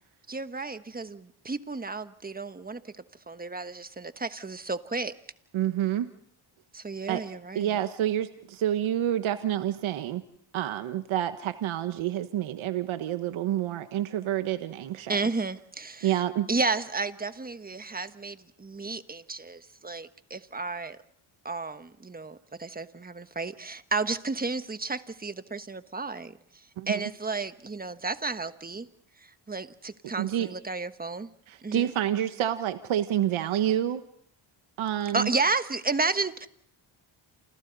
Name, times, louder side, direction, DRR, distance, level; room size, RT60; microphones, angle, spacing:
voice 1, 0.3-2.8 3.3-5.1 6.7-7.8 15.1-16.2 16.5-21.0 21.4-26.3 26.9-28.9 29.5-31.3 31.6-31.9 35.1-36.5, right 3 dB, 20° right, 10 dB, 1.3 m, -32 dB
voice 2, 5.5-6.1 7.1-7.2 7.5-10.2 10.5-15.3 16.0-16.5 26.8-27.1 30.0-30.5 31.5-34.0 34.8-35.3, right 11 dB, 75° right, 9 dB, 1.4 m, -28 dB
28.5 x 28.0 x 4.1 m, 0.67 s
cardioid pair, 90°, 49 cm